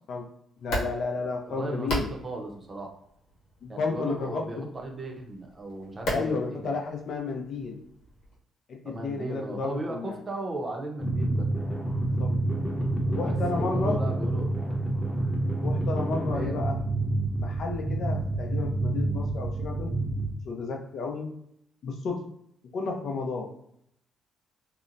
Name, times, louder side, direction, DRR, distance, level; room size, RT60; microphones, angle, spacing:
sound 1, 0.5-8.4, equal, 85° left, 1.0 m, -38 dB
voice 1, 0.6-2.1 3.6-4.7 6.1-7.8 8.7-10.2 12.2-12.4 13.1-14.0 15.6-16.8 17.4-20.0 20.5-21.3 21.8-22.3 22.7-23.5, left 4 dB, 65° left, 2 dB, 0.6 m, -32 dB
voice 2, 1.2-2.9 3.7-6.7 8.8-11.5 13.1-14.5 16.3-16.6, right 2 dB, 30° right, 1 dB, 0.7 m, -36 dB
sound 2, 11.0-20.3, right 2 dB, 5° left, 0.7 m, -28 dB
2.8 x 2.1 x 2.5 m, 0.73 s
cardioid pair, 90°, 0 cm